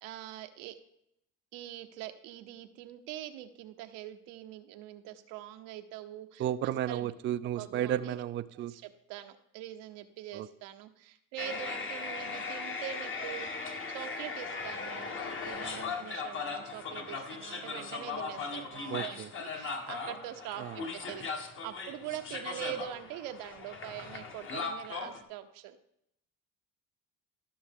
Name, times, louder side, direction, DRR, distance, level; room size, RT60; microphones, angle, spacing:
voice 1, 0.0-0.7 1.5-7.1 7.6-8.2 8.5-20.6 20.9-25.8, right 12 dB, 85° right, 8 dB, 0.9 m, -43 dB
voice 2, 6.4-8.7 10.3-10.5 18.9-19.3 20.6-20.8, right 11 dB, 40° right, 12 dB, 0.4 m, -33 dB
sound 1, 11.4-25.2, left 4 dB, 40° left, 1.4 m, -38 dB
14.0 x 6.2 x 3.7 m, 0.79 s
cardioid pair, 110°, 31 cm